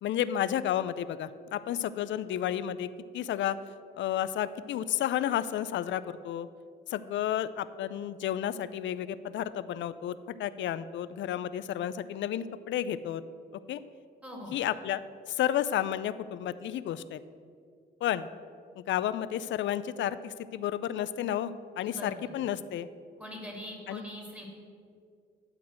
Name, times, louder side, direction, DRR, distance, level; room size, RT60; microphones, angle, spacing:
voice 1, 0.0-2.9 3.1-3.6 4.0-6.5 6.9-13.2 13.7-13.8 14.5-15.0 15.3-17.2 18.0-18.3 18.8-22.9 23.9-24.0, left 11 dB, 70° left, 15 dB, 0.5 m, -31 dB
voice 2, 14.2-14.5 21.8-22.4 23.2-24.5, equal, 5° right, 0 dB, 2.5 m, -43 dB
12.0 x 4.0 x 7.8 m, 2.2 s
cardioid pair, 90°, 20 cm